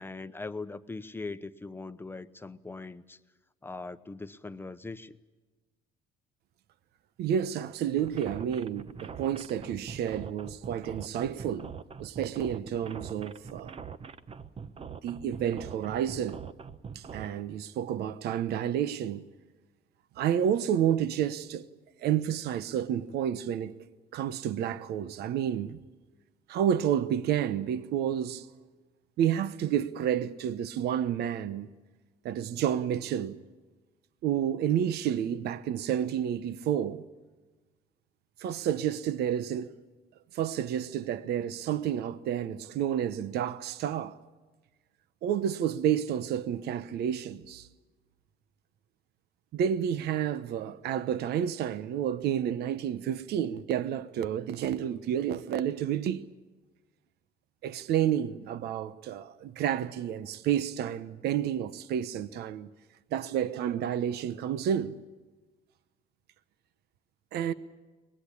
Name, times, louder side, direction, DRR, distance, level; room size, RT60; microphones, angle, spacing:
voice 1, 0.0-3.2 3.6-5.2, left 3 dB, 15° left, 0.9 m, -40 dB
voice 2, 7.2-11.7 12.0-13.8 15.0-16.4 16.9-19.2 20.2-21.7 22.0-23.7 24.1-25.8 26.5-28.5 29.2-31.7 32.2-33.4 34.2-37.0 38.4-39.8 40.3-44.2 45.2-47.7 49.5-56.3 57.6-62.7 63.1-65.0 67.3-67.5, right 9 dB, 75° right, 1.0 m, -30 dB
sound 1, 8.0-17.3, right 6 dB, 35° right, 1.0 m, -43 dB
23.5 x 20.0 x 8.6 m
cardioid pair, 110°, 17 cm